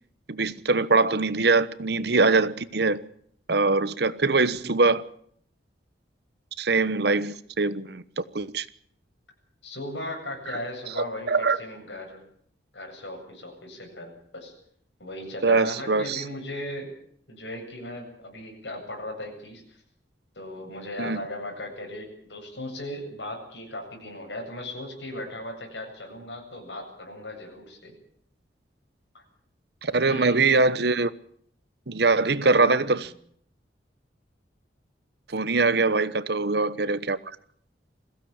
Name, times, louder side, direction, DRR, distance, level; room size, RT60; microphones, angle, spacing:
voice 1, 0.3-3.1 3.5-5.0 6.6-8.7 11.0-11.6 15.4-16.2 21.0-21.2 29.8-31.1 31.9-33.1 35.3-37.2, right 3 dB, 65° right, 1.1 m, -23 dB
voice 2, 9.6-12.2 12.7-14.5 15.0-16.9 17.3-19.6 20.3-27.9 29.1-29.2 30.0-30.4 32.4-33.0, left 1 dB, 80° left, 7.9 m, -37 dB
21.5 x 16.0 x 8.9 m
head